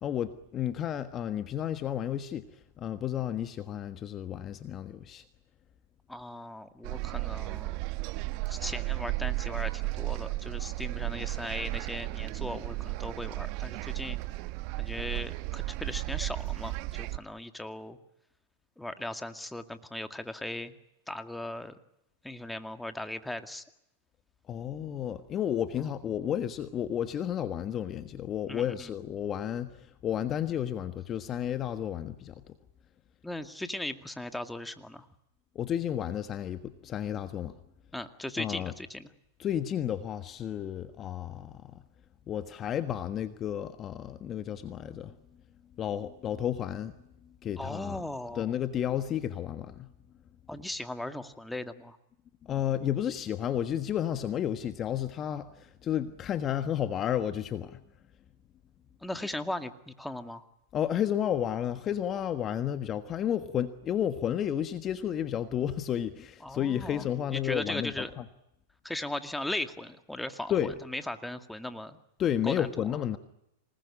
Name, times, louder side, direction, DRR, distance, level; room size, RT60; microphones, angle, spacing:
voice 1, 0.0-2.5 2.8-5.2 24.5-32.4 35.5-37.6 38.4-38.7 39.4-41.8 42.3-45.1 45.8-46.9 47.4-48.0 48.4-49.9 52.4-57.8 60.7-68.2 70.5-70.7 72.2-73.2, left 10 dB, 30° left, 10 dB, 1.4 m, -32 dB
voice 2, 6.1-7.8 8.5-14.2 14.8-18.0 18.8-20.7 21.1-21.8 22.2-23.6 28.5-28.9 33.2-35.1 37.9-39.1 47.6-48.5 50.5-52.0 59.0-60.5 66.4-67.0 67.3-68.1 68.8-70.5 70.9-72.0 72.4-72.9, left 1 dB, 5° left, 8 dB, 2.1 m, -38 dB
sound 1, 6.8-17.2, right 21 dB, 50° right, 1.1 m, -34 dB
27.0 x 20.0 x 10.0 m, 0.84 s
hypercardioid pair, 115°, 0 cm